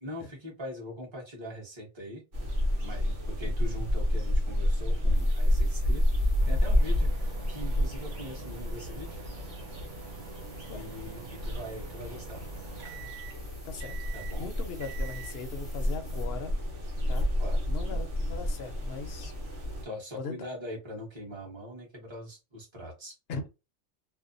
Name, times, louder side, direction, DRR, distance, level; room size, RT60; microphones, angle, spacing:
voice 1, 0.0-2.5 2.8-9.2 10.7-12.5 14.1-14.5 17.2-17.6 17.9-18.0 19.8-23.2, equal, 25° right, 1.0 m, -42 dB
sound 1, 2.3-19.9, left 1 dB, 80° right, 1.2 m, -30 dB
Tattoo Gun, 5.1-16.4 16.9-17.2, equal, ahead, 0.6 m, -57 dB
sound 2, 6.4-15.6, right 6 dB, 60° right, 0.5 m, -47 dB
voice 2, 13.6-14.0 14.4-16.6 17.1-17.3 17.7-19.3 20.2-20.4 23.3-23.5, left 4 dB, 65° left, 0.8 m, -39 dB
2.6 x 2.1 x 2.5 m
omnidirectional pair, 1.2 m